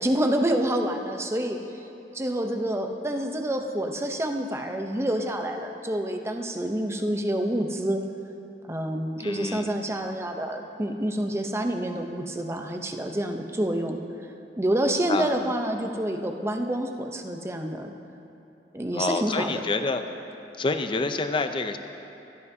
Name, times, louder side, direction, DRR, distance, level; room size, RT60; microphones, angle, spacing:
voice 1, 0.0-1.6 2.1-8.0 8.7-14.0 14.6-17.9 18.7-19.6, right 1 dB, 15° right, 4 dB, 0.6 m, -27 dB
voice 2, 9.2-9.7 15.1-15.5 18.9-20.0 20.6-21.8, left 3 dB, 30° left, 7 dB, 0.5 m, -28 dB
16.5 x 12.0 x 2.7 m, 2.8 s
head